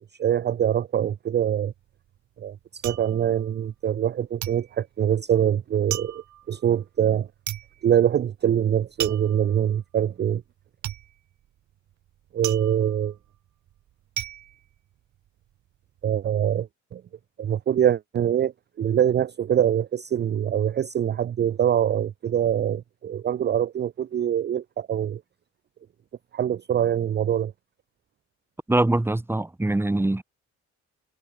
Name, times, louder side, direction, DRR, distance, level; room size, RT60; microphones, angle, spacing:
voice 1, 0.2-1.7 2.4-7.3 7.8-10.4 12.3-13.2 16.0-17.0 17.4-25.2 26.3-27.5, right 9 dB, 35° right, 0.5 m, -24 dB
sound 1, 1.7-4.1 4.4-15.5 15.9-16.4, right 12 dB, 70° right, 1.7 m, -36 dB
voice 2, 28.7-30.2, right 2 dB, 10° right, 1.0 m, -23 dB
cardioid pair, 90°, 30 cm